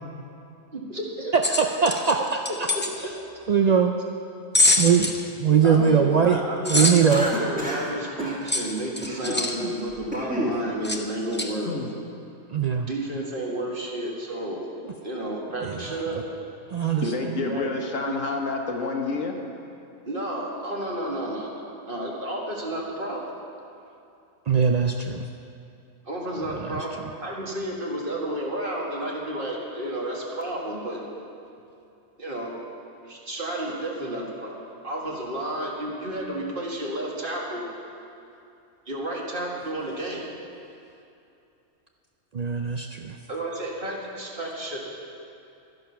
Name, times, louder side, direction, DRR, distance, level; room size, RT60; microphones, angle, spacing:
voice 1, 0.7-1.3 2.7-3.1 5.6-11.7 12.7-14.7 15.0-16.2 17.3-17.7 18.1-18.2 20.0-23.3 26.0-31.0 32.2-32.5 33.0-37.7 38.9-40.2 43.3-44.8, right 1 dB, 40° right, -3 dB, 2.0 m, -31 dB
sound 1, 1.4-2.9 4.5-5.2 6.6-7.2 8.5-9.5 10.8-11.0 11.3-11.5, left 2 dB, 15° left, 0.5 m, -24 dB
voice 2, 1.5-2.7 3.5-3.9 4.8-5.1 5.4-6.4 6.7-7.3 9.6-9.7 12.5-12.9 15.6-15.8 16.7-17.1 24.5-25.2 26.5-26.8 42.3-43.2, right 7 dB, 75° right, 3 dB, 0.3 m, -21 dB
Cough, 7.1-7.9 8.2-8.4 9.0-9.4 9.9-10.6, equal, 5° right, 1.9 m, -30 dB
voice 3, 17.0-19.4, left 3 dB, 70° left, 2 dB, 1.7 m, -29 dB
12.5 x 10.5 x 5.7 m, 2.7 s
omnidirectional pair, 1.4 m